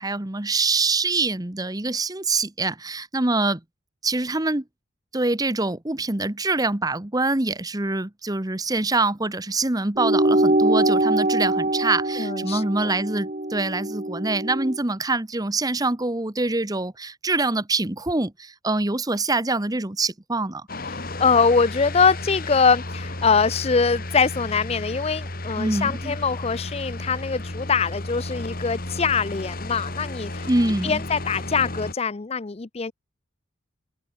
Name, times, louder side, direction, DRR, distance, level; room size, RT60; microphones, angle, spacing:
voice 1, 0.0-3.6 4.0-4.6 5.1-20.6 25.6-26.2 30.5-31.0, right 3 dB, 20° right, 1.1 m, -25 dB
sound 1, 10.0-14.8, right 1 dB, 40° right, 2.0 m, -23 dB
voice 2, 12.2-12.9 20.8-30.5 30.8-32.9, left 5 dB, 30° left, 0.5 m, -23 dB
sound 2, 20.7-31.9, left 2 dB, 45° left, 3.5 m, -33 dB
head